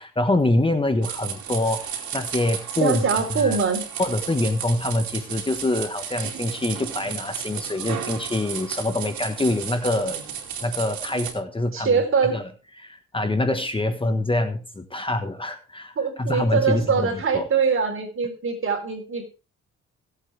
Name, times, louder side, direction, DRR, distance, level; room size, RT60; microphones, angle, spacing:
voice 1, 0.0-3.0 3.3-3.6 4.0-10.2 10.6-12.0 12.3-12.4 12.8-17.1 17.3-17.5, left 2 dB, 15° left, 8 dB, 1.3 m, -25 dB
sound 1, 1.0-11.3, right 8 dB, 70° right, 3.1 m, -33 dB
voice 2, 2.8-3.9 11.7-12.4 16.0-19.4, right 5 dB, 45° right, 4 dB, 4.1 m, -23 dB
18.0 x 8.3 x 3.4 m, 0.33 s
cardioid pair, 90°, 30 cm